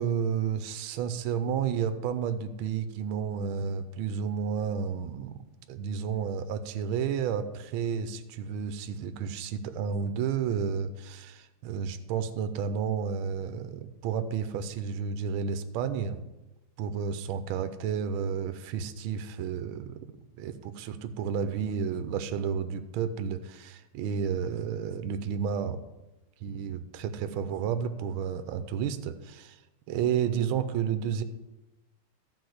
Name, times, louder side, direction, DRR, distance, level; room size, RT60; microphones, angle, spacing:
voice 1, 0.0-16.2 16.8-20.0 20.4-25.8 26.4-29.6 29.9-31.2, right 7 dB, 75° right, 10 dB, 1.5 m, -31 dB
12.5 x 4.9 x 7.9 m, 1.0 s
omnidirectional pair, 2.4 m